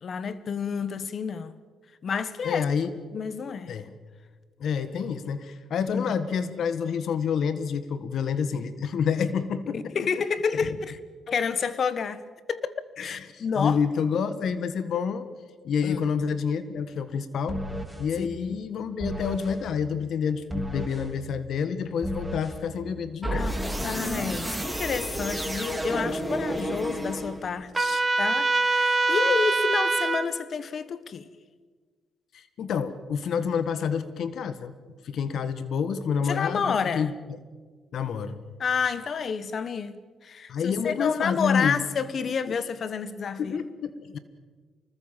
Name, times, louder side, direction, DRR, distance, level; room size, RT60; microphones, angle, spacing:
voice 1, 0.0-1.6 2.0-2.6 3.1-3.7 5.9-6.1 9.7-11.0 11.3-12.2 12.5-13.8 15.8-16.0 18.2-18.3 23.3-23.6 23.8-31.3 36.2-37.1 38.6-43.6, left 6 dB, 50° left, 1.3 m, -29 dB
voice 2, 2.4-2.9 3.7-3.9 4.6-9.9 13.0-15.3 15.6-23.5 32.3-34.7 35.0-37.1 37.9-38.4 40.5-41.8 43.4-44.2, left 6 dB, 65° left, 1.5 m, -28 dB
sound 1, 17.5-18.0 19.0-19.6 20.5-21.1 22.0-22.6 23.2-27.6, equal, 5° right, 3.1 m, -31 dB
Trumpet, 27.7-30.3, right 3 dB, 25° right, 2.0 m, -23 dB
25.0 x 20.0 x 7.5 m
cardioid pair, 90°, 0 cm